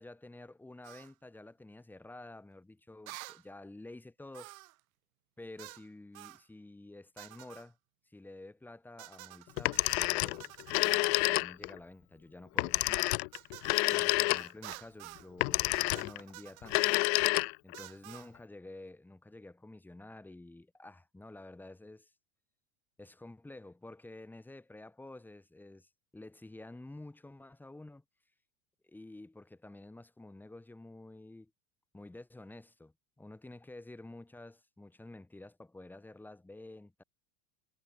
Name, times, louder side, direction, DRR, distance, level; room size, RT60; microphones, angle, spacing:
voice 1, 0.0-4.5 5.4-7.8 8.1-13.1 13.4-13.6 13.9-17.0 17.6-22.1 23.0-28.0 28.8-31.5 31.9-37.0, left 2 dB, 5° left, 5.7 m, -50 dB
sound 1, 0.8-1.1 3.1-3.4 4.3-4.8 5.6-5.9 6.2-6.4 7.2-7.7 9.0-11.1 13.3-15.3 15.7-17.0 17.7-18.3, right 18 dB, 85° right, 6.2 m, -50 dB
Telephone, 9.6-11.8 12.6-14.7 15.4-16.2 16.6-17.8, left 30 dB, 55° left, 0.6 m, -29 dB
supercardioid pair, 170°, 40 cm